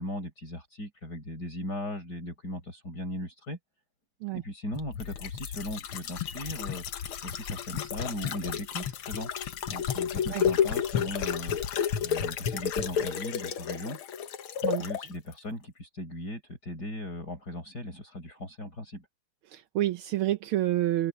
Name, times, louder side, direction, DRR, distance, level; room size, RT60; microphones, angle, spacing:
voice 1, 0.0-3.6 4.3-6.9 7.2-9.3 9.7-11.6 12.0-14.0 14.7-19.1, left 1 dB, 45° left, 5.8 m, -38 dB
sound 1, 4.7-15.1 15.4-15.5, left 8 dB, 75° left, 2.0 m, -31 dB
voice 2, 19.5-21.1, right 14 dB, 80° right, 1.6 m, -28 dB
open air
omnidirectional pair, 2.4 m